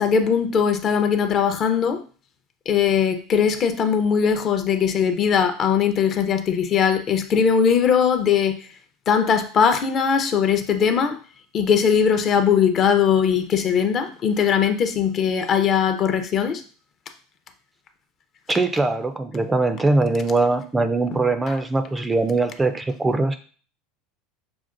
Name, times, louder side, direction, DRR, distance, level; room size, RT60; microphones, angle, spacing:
voice 1, 0.0-2.0 2.7-8.6 9.1-11.2 11.5-16.6 21.5-21.6, left 7 dB, 40° left, 8 dB, 0.5 m, -20 dB
voice 2, 18.5-23.4, right 3 dB, 15° right, 8 dB, 0.3 m, -21 dB
5.8 x 2.2 x 2.5 m, 0.40 s
supercardioid pair, 115°, 0 cm